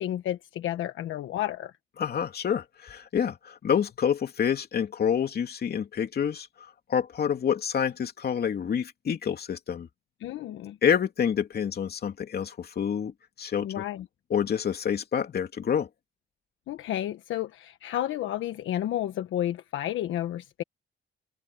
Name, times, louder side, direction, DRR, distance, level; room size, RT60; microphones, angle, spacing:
voice 1, 0.0-1.7 10.2-10.8 13.6-14.1 16.7-20.6, left 12 dB, 80° left, 1.3 m, -31 dB
voice 2, 2.0-6.5 6.9-9.9 10.8-13.1 13.4-13.8 14.3-15.9, left 8 dB, 50° left, 2.9 m, -27 dB
cardioid pair, 90°, 20 cm